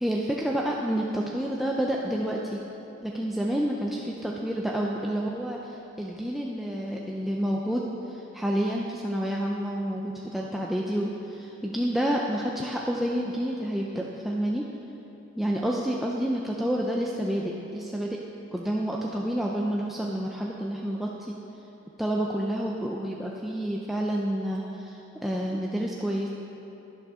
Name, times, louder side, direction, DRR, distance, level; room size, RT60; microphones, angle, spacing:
voice 1, 0.0-2.6 3.0-14.7 15.4-18.2 18.5-21.4 22.0-26.3, equal, ahead, -3 dB, 0.4 m, -29 dB
11.5 x 10.5 x 3.6 m, 3.0 s
head